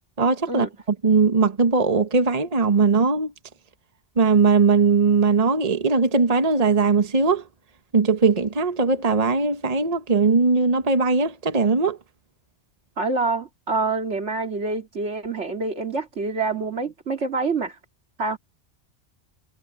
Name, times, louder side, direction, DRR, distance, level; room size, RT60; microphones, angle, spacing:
voice 1, 0.2-0.7 1.0-3.3 4.2-7.4 7.9-12.0, right 4 dB, 35° right, 1.2 m, -19 dB
voice 2, 13.0-17.8 18.2-18.4, right 3 dB, 75° right, 2.6 m, -26 dB
omnidirectional pair, 1.2 m